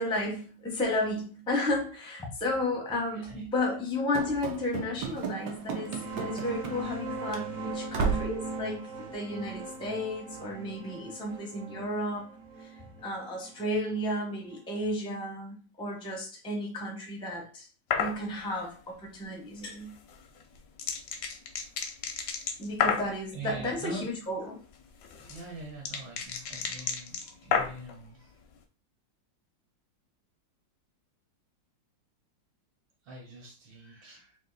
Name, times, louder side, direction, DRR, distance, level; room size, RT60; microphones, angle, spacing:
voice 1, 0.0-12.3 12.6-12.7 13.0-17.7 18.0-19.9 22.6-24.6, left 1 dB, 5° left, 0 dB, 0.4 m, -33 dB
voice 2, 3.1-3.5 23.3-24.1 25.1-28.4 33.0-34.4, right 2 dB, 70° right, 0 dB, 1.6 m, -44 dB
Run / Slam, 4.1-7.0 7.3-7.5 7.9-8.4, right 5 dB, 85° right, 1.4 m, -34 dB
sound 1, 5.6-14.9, right 2 dB, 50° right, 1.4 m, -40 dB
sound 2, 17.9-18.2 20.1-23.2 24.7-27.9, left 7 dB, 65° left, 0.9 m, -31 dB
3.5 x 2.7 x 3.9 m, 0.36 s
omnidirectional pair, 2.0 m